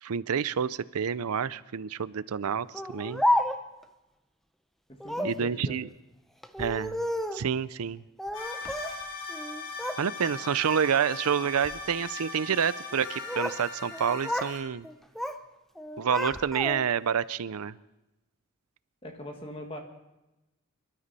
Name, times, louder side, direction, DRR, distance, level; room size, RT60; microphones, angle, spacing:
voice 1, 0.0-3.2 5.2-5.9 6.6-6.9 7.3-8.0 10.0-14.9 16.0-17.8, right 7 dB, 80° right, 18 dB, 0.5 m, -28 dB
Speech, 2.7-3.8 5.0-5.4 6.4-7.5 8.2-9.0 9.3-10.0 10.4-10.8 11.5-11.8 12.9-13.6 13.9-14.6 14.8-15.4 15.8-17.0, left 1 dB, ahead, 0.6 m, -31 dB
voice 2, 4.9-5.8 19.0-19.8, left 1 dB, 25° left, 3 dB, 1.8 m, -41 dB
sound 1, 8.3-14.6, left 4 dB, 75° left, 6.2 m, -39 dB
25.0 x 12.5 x 4.2 m, 0.98 s
head